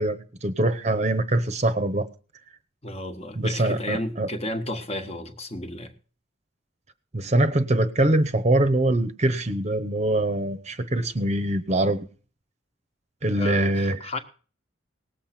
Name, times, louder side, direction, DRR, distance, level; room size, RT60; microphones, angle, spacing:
voice 1, 0.0-2.1 3.3-4.3 7.1-12.0 13.2-14.0, right 1 dB, 35° right, 12 dB, 0.8 m, -23 dB
voice 2, 2.8-5.9 13.4-14.2, left 1 dB, 30° left, 8 dB, 1.3 m, -32 dB
18.5 x 7.4 x 5.9 m, 0.39 s
head